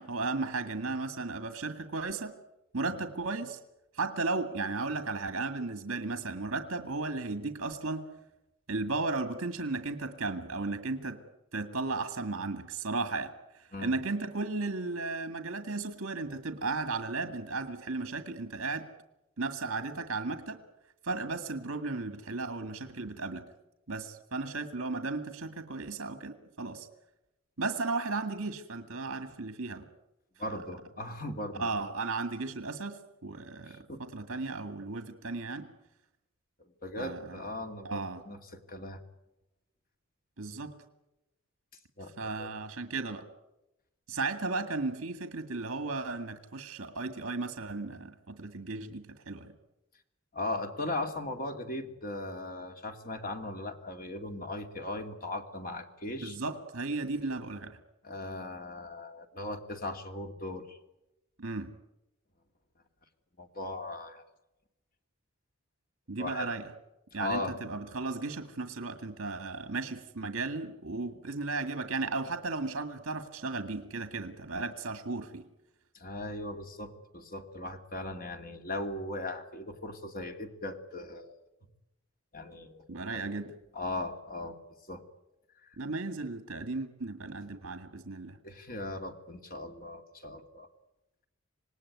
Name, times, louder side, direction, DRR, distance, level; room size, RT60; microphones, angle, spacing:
voice 1, 0.0-2.3 2.7-3.6 3.9-8.0 8.7-11.2 11.5-13.3 13.8-18.9 19.4-20.6 21.0-23.5 23.9-26.9 27.6-29.8 31.6-35.7 37.0-37.4 37.8-38.2 40.4-40.7 42.2-43.3 44.1-49.5 56.2-57.8 61.4-61.7 66.1-66.6 67.1-75.5 82.9-83.5 85.8-88.4, right 3 dB, 65° right, 8 dB, 2.0 m, -35 dB
voice 2, 30.4-31.8 33.6-34.0 36.6-39.0 42.0-42.5 50.3-56.4 58.0-60.8 63.4-64.2 66.1-66.5 67.1-67.6 75.9-81.4 82.3-83.2 83.7-84.6 84.8-85.0 85.5-85.8 88.4-90.7, left 2 dB, 40° left, 5 dB, 2.6 m, -38 dB
26.5 x 19.5 x 9.6 m, 0.94 s
head